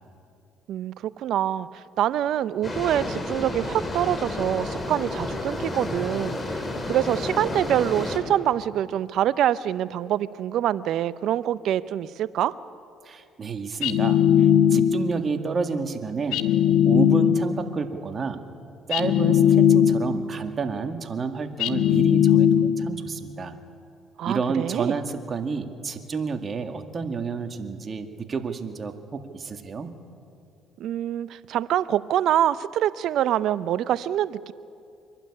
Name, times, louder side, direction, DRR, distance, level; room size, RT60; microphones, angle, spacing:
voice 1, 0.7-12.5 24.2-25.0 30.8-34.5, right 11 dB, 70° right, 17 dB, 0.6 m, -25 dB
sound 1, 2.6-8.2, left 1 dB, 30° left, 3.8 m, -31 dB
voice 2, 13.0-14.2 14.7-16.4 16.9-18.4 18.9-23.5 24.2-29.9, right 5 dB, 40° right, 6 dB, 1.9 m, -30 dB
sound 2, 13.8-15.2 16.3-17.7 18.9-20.3 21.6-23.0, left 9 dB, 80° left, 0.9 m, -19 dB
24.5 x 12.0 x 9.8 m, 2.6 s
supercardioid pair, 70°, 0 cm